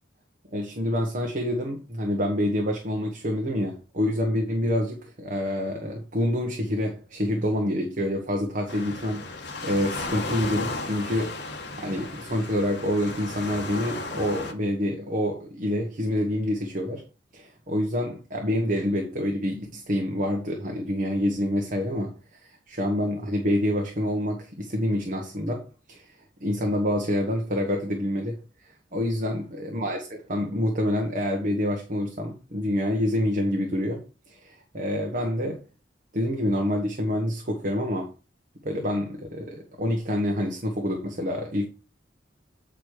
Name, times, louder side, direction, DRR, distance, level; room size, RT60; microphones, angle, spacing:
voice 1, 0.5-11.4 11.8-17.0 17.3-35.6 36.1-38.1 38.6-41.7, equal, 45° right, 1.3 m, -27 dB
Waves surf, 8.7-14.5, left 2 dB, 65° left, 1.5 m, -34 dB
8.5 x 5.0 x 4.7 m
head